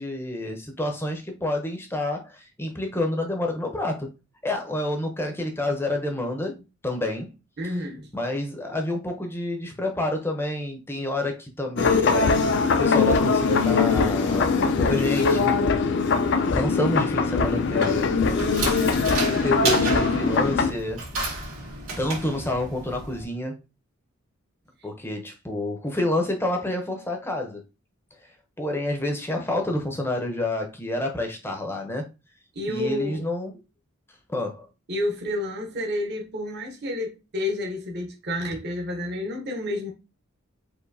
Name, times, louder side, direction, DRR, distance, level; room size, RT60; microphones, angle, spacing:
voice 1, 0.0-4.1 4.4-7.4 8.1-12.5 12.8-15.5 16.5-18.1 19.2-21.0 22.0-23.6 24.8-27.6 28.6-32.1 32.7-33.5 34.3-34.7, left 1 dB, 10° left, 0.6 m, -28 dB
voice 2, 7.6-8.1 32.5-33.2 34.9-39.9, left 1 dB, 50° right, 0.9 m, -30 dB
sound 1, 11.8-20.7, left 4 dB, 55° left, 0.5 m, -21 dB
sound 2, 17.6-23.2, right 3 dB, 80° right, 2.1 m, -32 dB
4.6 x 2.7 x 2.7 m
head